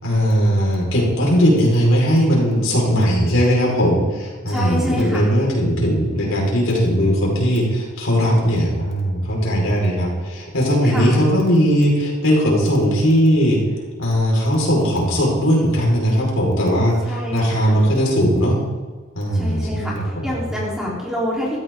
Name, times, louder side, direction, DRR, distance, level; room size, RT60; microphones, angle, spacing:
voice 1, 0.0-13.6 14.0-18.6 19.1-20.6, equal, 80° left, -3 dB, 5.1 m, -18 dB
voice 2, 4.5-5.3 10.9-11.3 17.1-17.9 19.3-21.6, equal, 5° right, -6 dB, 3.9 m, -27 dB
16.0 x 14.0 x 3.9 m, 1.4 s
head